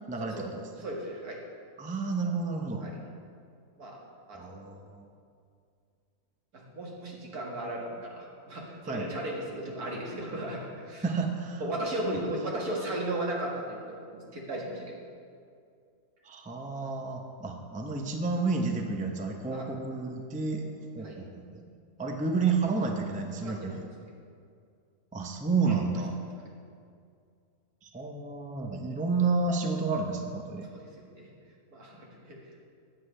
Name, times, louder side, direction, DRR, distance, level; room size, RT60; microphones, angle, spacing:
voice 1, 0.1-0.6 1.8-2.9 4.3-5.1 8.9-9.1 11.0-11.6 16.2-20.6 20.9-21.6 22.0-23.8 25.1-26.1 27.8-30.7, right 4 dB, 10° right, 2 dB, 0.5 m, -30 dB
voice 2, 0.8-1.4 2.8-3.0 3.8-4.0 4.3-4.7 6.5-11.0 11.6-14.9 19.5-19.7 21.0-21.2 23.4-23.7 25.7-25.8 30.7-31.3 31.7-32.4, right 1 dB, 85° right, -3 dB, 2.4 m, -36 dB
18.0 x 7.7 x 3.3 m, 2.3 s
omnidirectional pair, 1.6 m